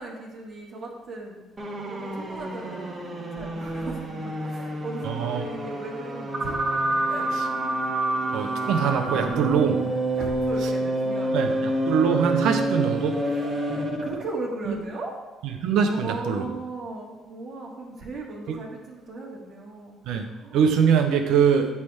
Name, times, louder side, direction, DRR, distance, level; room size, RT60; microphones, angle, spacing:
voice 1, 0.0-1.5 1.9-6.6 7.1-7.3 10.2-11.9 13.2-15.2 15.9-20.7, right 2 dB, 55° right, -2 dB, 1.3 m, -38 dB
sound 1, 1.6-14.3, right 2 dB, 30° right, 1.2 m, -28 dB
voice 2, 5.0-5.4 8.3-9.8 11.3-13.1 14.7-14.8 15.6-16.5 18.5-18.6 20.0-20.2 20.5-21.7, right 7 dB, 75° right, 6 dB, 0.7 m, -23 dB
8.3 x 3.3 x 4.5 m, 1.2 s
supercardioid pair, 65°, 0 cm